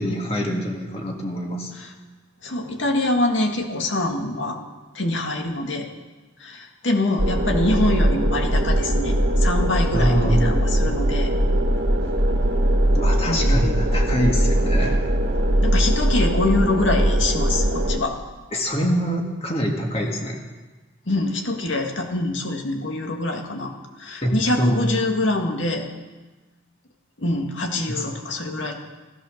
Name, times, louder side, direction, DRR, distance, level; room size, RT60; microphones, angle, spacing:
voice 1, 0.0-1.7 9.9-10.5 12.9-15.1 18.5-20.4 24.2-24.8 27.9-28.1, equal, 30° left, 1 dB, 2.2 m, -24 dB
voice 2, 2.4-4.6 4.9-5.9 6.4-11.3 13.2-13.6 15.6-18.2 21.1-23.7 24.0-25.9 27.2-28.7, left 2 dB, 75° left, 3 dB, 2.1 m, -24 dB
sound 1, 7.2-18.0, right 1 dB, 75° right, 1.4 m, -20 dB
15.5 x 12.5 x 6.6 m, 1.2 s
head